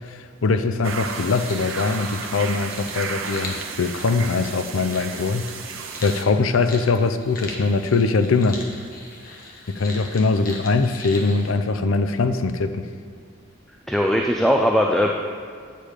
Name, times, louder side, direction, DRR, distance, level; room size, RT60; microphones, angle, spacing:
voice 1, 0.0-5.5 6.0-8.6 9.7-12.9, left 3 dB, 85° left, 10 dB, 0.5 m, -22 dB
sound 1, 0.8-6.2, right 5 dB, 75° right, 0.8 m, -33 dB
sound 2, 0.9-11.5, left 2 dB, 45° left, 1.3 m, -40 dB
voice 2, 13.9-15.1, equal, ahead, 1 dB, 0.4 m, -19 dB
9.0 x 6.8 x 4.9 m, 2.1 s
head